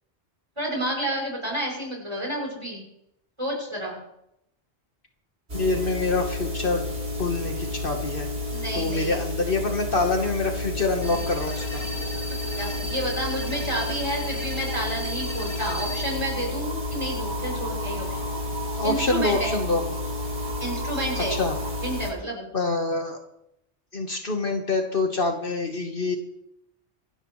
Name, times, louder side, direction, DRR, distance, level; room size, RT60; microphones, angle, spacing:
voice 1, 0.6-2.8 3.4-4.0 8.5-9.2 12.3-18.3 18.8-19.6 20.6-21.4 21.8-22.5, right 1 dB, 25° right, -1 dB, 6.7 m, -30 dB
voice 2, 5.5-6.8 7.2-8.3 8.7-11.8 18.8-19.8 21.1-21.5 22.5-23.2 23.9-26.2, left 3 dB, 55° left, 3 dB, 1.6 m, -26 dB
sound 1, 5.5-22.1, left 1 dB, 70° right, 3.9 m, -31 dB
sound 2, 11.0-16.1, left 1 dB, 25° left, 2.2 m, -36 dB
26.0 x 13.0 x 3.2 m, 0.80 s
omnidirectional pair, 1.1 m